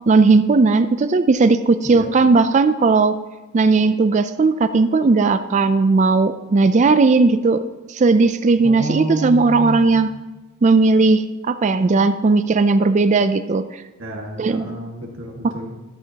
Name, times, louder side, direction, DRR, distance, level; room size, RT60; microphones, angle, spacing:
voice 1, 0.1-3.2 3.5-7.6 7.9-10.1 10.6-13.8 14.4-14.7 15.4-15.5, right 3 dB, 35° right, 11 dB, 0.4 m, -16 dB
voice 2, 8.6-10.0 14.0-15.7, right 1 dB, 70° right, -1 dB, 1.8 m, -29 dB
13.5 x 13.5 x 2.9 m, 1.1 s
head